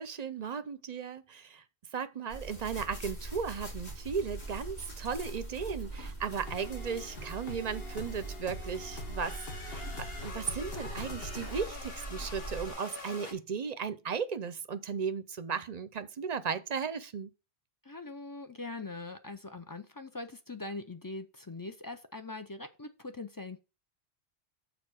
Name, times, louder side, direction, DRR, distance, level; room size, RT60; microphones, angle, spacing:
voice 1, 0.0-1.6 1.9-17.3, right 6 dB, 45° right, 0.6 m, -36 dB
sound 1, 2.3-12.7, right 2 dB, 80° left, 3.2 m, -42 dB
digital romance loop, 6.4-13.3, left 3 dB, 65° left, 1.7 m, -44 dB
voice 2, 17.9-23.6, left 3 dB, 30° left, 0.4 m, -42 dB
6.7 x 4.1 x 6.1 m
omnidirectional pair, 1.1 m